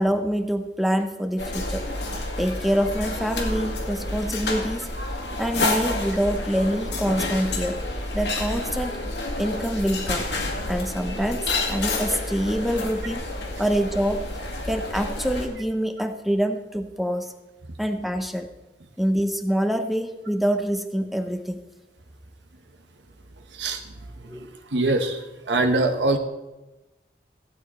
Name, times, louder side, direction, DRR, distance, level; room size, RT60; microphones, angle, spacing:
voice 1, 0.0-1.8 2.4-4.9 5.4-7.8 8.1-9.0 9.4-10.3 10.7-13.3 13.6-14.3 14.6-17.3 17.8-18.5 19.0-21.6 24.2-24.5, equal, ahead, 7 dB, 0.6 m, -25 dB
sound 1, 1.4-15.5, left 2 dB, 75° left, 1.9 m, -29 dB
voice 2, 24.2-26.2, right 2 dB, 85° right, 5 dB, 1.1 m, -24 dB
15.5 x 8.9 x 4.3 m, 1.1 s
head